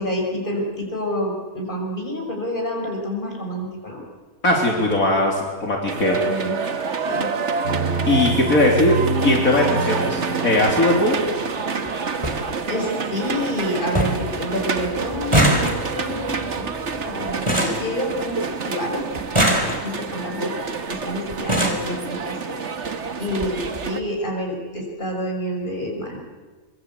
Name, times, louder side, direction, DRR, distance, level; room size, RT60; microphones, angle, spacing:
voice 1, 0.0-4.0 6.3-6.6 7.1-7.3 12.6-16.7 17.0-19.4 19.8-20.5 20.8-22.6 23.2-26.2, left 1 dB, 35° left, 1 dB, 6.0 m, -28 dB
voice 2, 4.4-6.2 8.1-8.9 9.2-11.2, left 2 dB, 65° left, -1 dB, 3.8 m, -19 dB
sound 1, 5.9-24.0, right 5 dB, 50° right, 1.6 m, -28 dB
sound 2, 7.6-11.4, right 3 dB, 70° right, 5.5 m, -27 dB
sound 3, 10.2-10.3 11.5-11.6 11.9-12.0 12.2-12.4 12.9-13.4 13.6-13.7 13.9-14.3 14.6-18.6 19.2-20.1 20.9-21.0 21.3-21.9 22.8-22.9 23.3-23.5 23.7-23.9, right 1 dB, 20° right, 3.9 m, -23 dB
24.5 x 24.5 x 8.4 m, 1.4 s
omnidirectional pair, 1.6 m